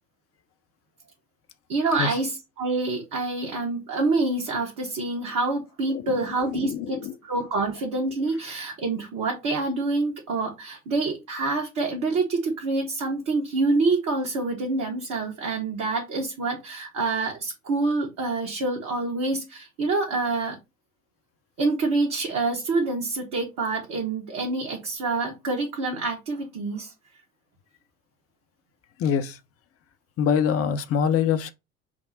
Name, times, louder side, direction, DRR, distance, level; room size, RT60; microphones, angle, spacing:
voice 1, 1.7-7.0 7.2-20.6 21.6-26.9, right 3 dB, 45° right, 1.2 m, -26 dB
voice 2, 5.9-7.2 29.0-29.4 30.2-31.5, left 7 dB, 35° left, 0.6 m, -25 dB
5.9 x 2.0 x 4.0 m
figure-of-eight pair, 60°, 40 cm